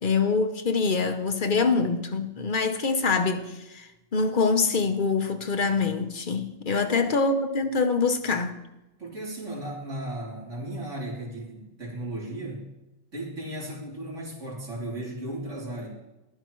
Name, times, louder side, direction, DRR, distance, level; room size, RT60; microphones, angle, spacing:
voice 1, 0.0-8.6, left 4 dB, 45° left, 1.1 m, -25 dB
voice 2, 6.7-7.0 9.0-12.7 13.1-15.9, right 1 dB, 65° right, 3.5 m, -35 dB
19.5 x 12.5 x 3.1 m
omnidirectional pair, 1.3 m